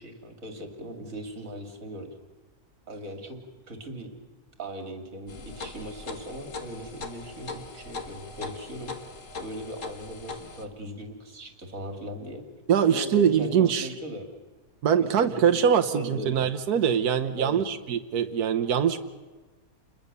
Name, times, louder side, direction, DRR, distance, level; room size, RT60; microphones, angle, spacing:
voice 1, 0.0-2.2 2.9-3.4 3.7-4.1 4.6-8.9 9.4-12.4 12.8-14.3 15.0-15.4 15.7-16.4 17.4-17.7, equal, 60° right, 5 dB, 3.2 m, -39 dB
sound 1, 5.3-10.6, left 4 dB, 55° left, 2.0 m, -40 dB
voice 2, 12.7-13.9 14.8-19.0, right 8 dB, 80° right, 6 dB, 1.5 m, -23 dB
29.0 x 21.5 x 6.9 m, 1.2 s
omnidirectional pair, 1.6 m